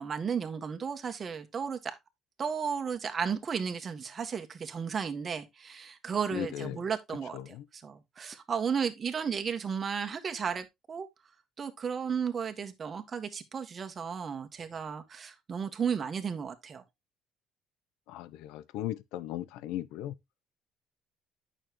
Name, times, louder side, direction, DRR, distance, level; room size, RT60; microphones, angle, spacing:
voice 1, 0.0-2.0 2.4-11.1 11.6-16.8, right 6 dB, 35° right, 1.5 m, -34 dB
voice 2, 6.3-6.8 7.3-7.6 18.1-20.1, left 12 dB, 85° left, 0.6 m, -37 dB
9.0 x 6.6 x 3.0 m
cardioid pair, 110°, 0 cm